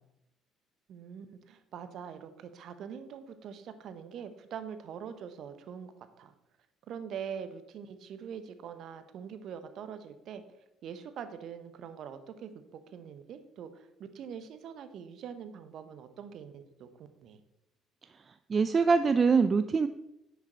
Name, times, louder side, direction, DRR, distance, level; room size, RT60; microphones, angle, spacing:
voice 1, 0.9-5.9 6.2-6.3 6.9-10.4 10.8-13.9 14.1-17.4, right 7 dB, 55° right, 10 dB, 1.0 m, -43 dB
voice 2, 18.5-19.9, right 5 dB, 35° right, 11 dB, 0.4 m, -23 dB
9.7 x 7.3 x 4.3 m, 0.87 s
figure-of-eight pair, 50°, 0 cm